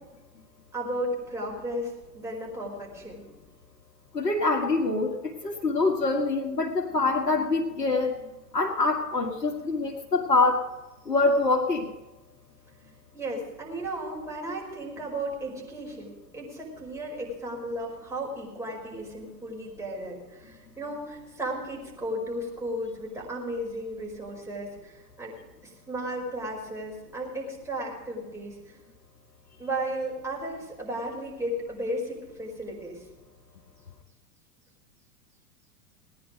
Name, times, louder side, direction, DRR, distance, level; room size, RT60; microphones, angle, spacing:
voice 1, 0.7-3.3 13.1-25.3 25.6-28.8 29.6-33.0, right 1 dB, 5° right, -3 dB, 5.3 m, -34 dB
voice 2, 4.1-8.1 8.5-10.6 11.1-11.9, left 3 dB, 85° left, -1 dB, 1.9 m, -25 dB
18.5 x 10.5 x 5.1 m, 1.1 s
hypercardioid pair, 105°, 49 cm